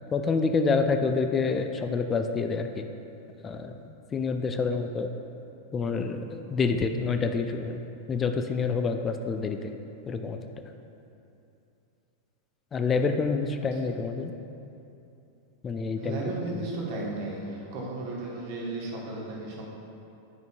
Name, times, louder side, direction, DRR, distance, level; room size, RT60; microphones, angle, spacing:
voice 1, 0.1-2.9 3.4-3.7 4.1-5.1 5.7-7.8 8.1-9.7 10.1-10.4 12.7-14.3 15.6-16.2, left 4 dB, 20° left, 6 dB, 0.4 m, -27 dB
voice 2, 16.0-19.7, right 2 dB, 50° right, -3 dB, 1.2 m, -35 dB
9.6 x 5.2 x 2.3 m, 2.8 s
figure-of-eight pair, 90°, 0 cm